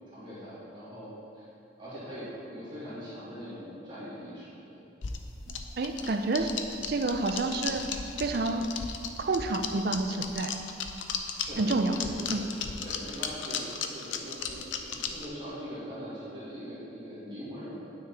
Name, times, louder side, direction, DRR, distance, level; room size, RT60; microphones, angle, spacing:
voice 1, 0.1-1.5 1.8-4.8 11.4-12.5 12.8-17.8, equal, 25° right, -11 dB, 2.1 m, -42 dB
sound 1, 5.0-15.2, left 6 dB, 75° left, 0.6 m, -35 dB
voice 2, 5.5-6.5 6.8-7.9 8.2-8.7 9.2-10.5 11.6-11.9 12.3-12.5, right 2 dB, 55° right, 7 dB, 0.5 m, -29 dB
9.7 x 6.4 x 4.2 m, 2.7 s
head